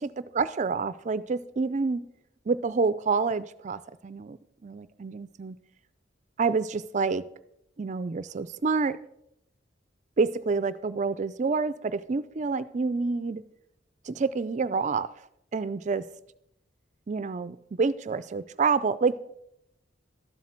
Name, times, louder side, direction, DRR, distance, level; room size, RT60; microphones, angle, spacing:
voice 1, 0.0-2.0 2.5-4.4 4.6-5.6 6.4-7.2 7.8-9.0 10.2-13.4 14.1-15.1 15.5-16.1 17.1-19.2, right 4 dB, 40° right, 16 dB, 0.4 m, -28 dB
12.5 x 7.4 x 4.4 m, 0.77 s
head